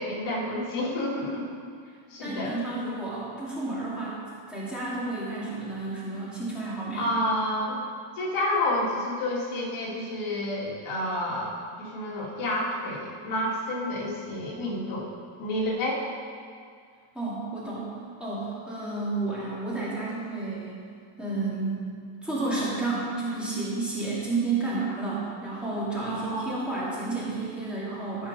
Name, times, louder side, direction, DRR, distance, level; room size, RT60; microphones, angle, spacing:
voice 1, 0.0-1.4 2.1-2.6 6.9-7.8 8.2-15.1 15.4-16.0 26.0-26.5, left 1 dB, 75° left, -4 dB, 2.5 m, -29 dB
voice 2, 2.2-4.2 4.5-7.1 17.1-17.9 18.2-20.8 21.2-21.9 22.2-28.3, right 3 dB, ahead, -10 dB, 2.3 m, -31 dB
13.5 x 5.2 x 5.3 m, 2.2 s
cardioid pair, 180°, 49 cm